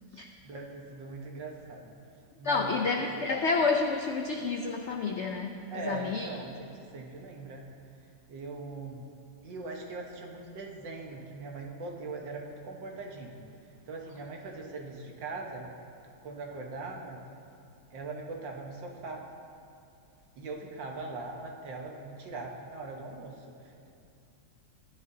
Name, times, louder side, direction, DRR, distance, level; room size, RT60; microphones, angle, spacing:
voice 1, 0.1-1.9 2.4-3.3 5.7-7.6 8.3-9.1 9.4-13.4 13.9-15.7 16.2-17.2 17.9-19.3 20.4-23.9, right 3 dB, 85° right, 0 dB, 1.9 m, -41 dB
voice 2, 2.4-6.3, left 4 dB, 85° left, 3 dB, 0.6 m, -29 dB
16.0 x 10.5 x 2.7 m, 2.5 s
omnidirectional pair, 1.9 m